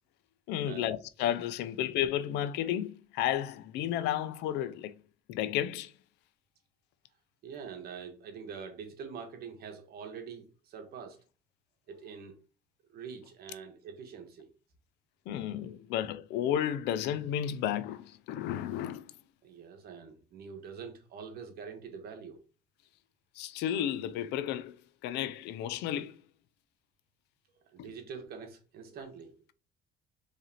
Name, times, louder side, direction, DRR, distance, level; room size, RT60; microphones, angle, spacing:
voice 1, 0.5-5.0 5.3-5.9 15.3-19.1 23.4-24.8 25.0-26.2 27.8-27.9, left 11 dB, 85° left, 0.4 m, -32 dB
voice 2, 7.4-11.2 11.9-12.4 12.9-14.5 15.6-15.8 19.4-22.4 27.7-29.3, right 6 dB, 65° right, 1.2 m, -45 dB
4.8 x 3.2 x 2.8 m
cardioid pair, 110°, 17 cm